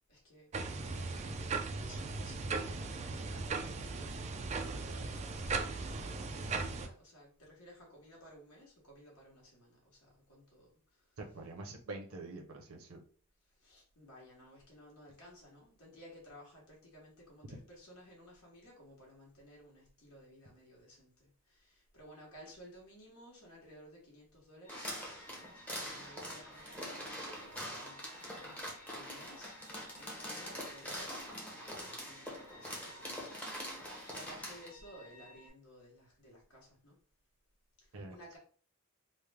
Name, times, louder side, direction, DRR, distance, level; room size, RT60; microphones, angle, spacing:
voice 1, 0.1-0.5 0.9-11.5 13.5-25.0 25.8-28.1 28.9-37.0 37.8-38.4, equal, 70° left, -4 dB, 1.2 m, -56 dB
sound 1, 0.5-6.9, right 3 dB, 30° right, 0.3 m, -38 dB
voice 2, 11.2-13.0 37.9-38.2, right 2 dB, 65° right, 2 dB, 0.7 m, -45 dB
sound 2, 24.6-35.5, left 1 dB, 35° left, 1.0 m, -58 dB
sound 3, 24.7-34.7, equal, 5° left, 0.7 m, -44 dB
3.2 x 2.1 x 3.4 m, 0.43 s
head